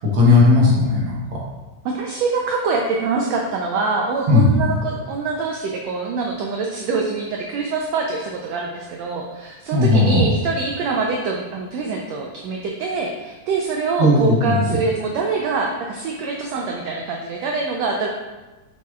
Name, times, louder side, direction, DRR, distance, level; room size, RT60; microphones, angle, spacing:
voice 1, 0.1-1.4 4.3-4.7 9.7-10.3 14.0-14.8, left 2 dB, 60° right, -5 dB, 1.6 m, -16 dB
voice 2, 1.8-18.1, right 4 dB, 85° right, 0 dB, 1.5 m, -24 dB
6.9 x 6.1 x 2.4 m, 1.1 s
omnidirectional pair, 3.7 m